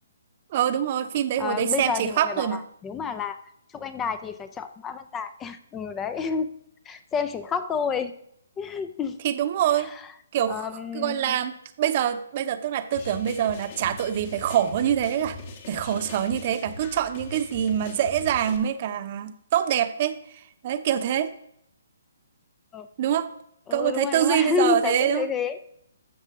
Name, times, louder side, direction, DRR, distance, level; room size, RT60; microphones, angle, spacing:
voice 1, 0.5-2.6 9.2-9.9 10.3-10.7 10.9-15.4 15.7-20.2 20.6-21.3 23.0-23.3 23.7-25.3, right 10 dB, 40° right, 10 dB, 0.9 m, -25 dB
voice 2, 1.4-3.4 3.7-6.5 6.9-8.1 8.6-9.2 9.8-9.9 10.5-11.4 22.7-22.9 23.7-25.6, left 6 dB, 15° left, 11 dB, 0.5 m, -29 dB
sound 1, 12.9-18.6, left 4 dB, 45° left, 1.7 m, -41 dB
13.0 x 7.1 x 3.8 m, 0.73 s
figure-of-eight pair, 140°, 0 cm